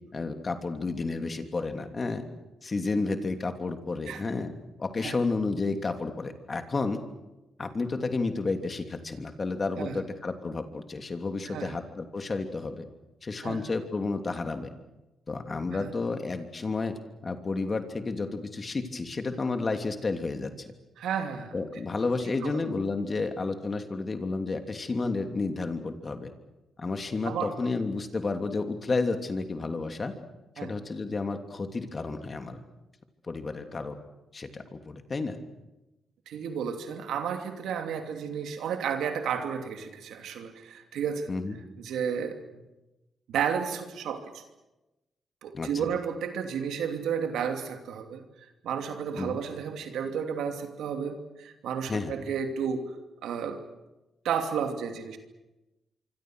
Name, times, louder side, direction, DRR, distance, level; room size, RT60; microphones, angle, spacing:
voice 1, 0.1-2.2 2.6-4.5 4.8-7.0 7.6-12.8 13.2-14.7 15.3-20.7 21.5-26.3 26.8-30.1 30.6-32.6 33.3-34.0 34.3-35.4 41.3-41.6 45.5-45.9 49.2-49.4 51.9-52.1, left 3 dB, 40° left, 6 dB, 3.0 m, -31 dB
voice 2, 21.0-21.5 22.3-22.7 27.2-27.5 30.6-30.7 36.3-41.3 41.8-42.6 43.3-44.4 45.4-48.2 48.6-52.9 53.2-53.6 54.2-55.2, right 7 dB, 85° right, 6 dB, 2.8 m, -32 dB
25.5 x 25.0 x 6.4 m, 1.0 s
cardioid pair, 65°, 0 cm